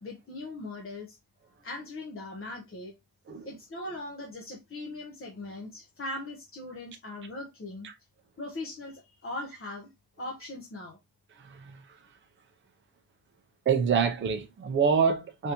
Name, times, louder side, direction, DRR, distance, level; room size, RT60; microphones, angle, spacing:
voice 1, 0.0-1.2 1.6-2.9 3.4-7.9 8.4-9.9 10.2-11.0, left 2 dB, 30° left, 0.6 m, -40 dB
voice 2, 11.4-11.8 13.7-15.5, right 6 dB, 25° right, 0.5 m, -26 dB
3.5 x 2.6 x 2.8 m
wide cardioid pair, 150°, 46 cm